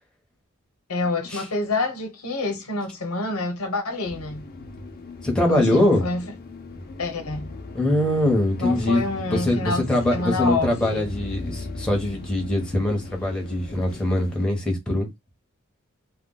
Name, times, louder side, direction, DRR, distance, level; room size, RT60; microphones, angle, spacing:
voice 1, 0.9-4.5 5.5-6.2 7.0-7.5 8.6-11.0, left 2 dB, 80° left, 0.9 m, -28 dB
sound 1, 4.0-14.5, left 2 dB, 45° left, 0.5 m, -37 dB
voice 2, 5.2-6.0 7.7-15.1, left 1 dB, 5° left, 0.9 m, -23 dB
2.3 x 2.2 x 3.7 m
head